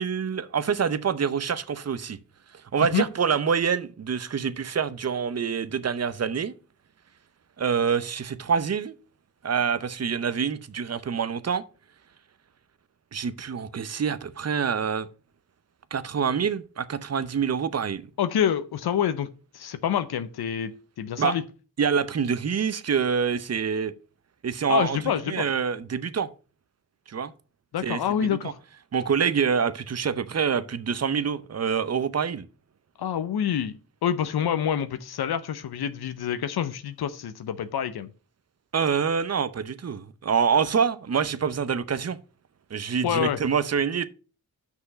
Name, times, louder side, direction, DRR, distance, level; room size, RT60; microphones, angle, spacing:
voice 1, 0.0-2.2 2.7-6.5 7.6-8.9 9.4-11.6 13.1-15.1 15.9-18.1 21.2-21.3 21.8-23.9 24.4-25.0 25.3-26.3 27.1-27.3 27.8-28.5 28.9-32.4 38.7-42.2 42.7-44.1, right 6 dB, 45° right, 0.8 m, -26 dB
voice 2, 18.2-19.3 19.5-20.7 21.0-21.4 24.7-25.5 27.7-28.6 33.0-38.1 43.0-43.4, left 9 dB, 85° left, 0.7 m, -27 dB
6.2 x 5.6 x 6.6 m
cardioid pair, 85°, 37 cm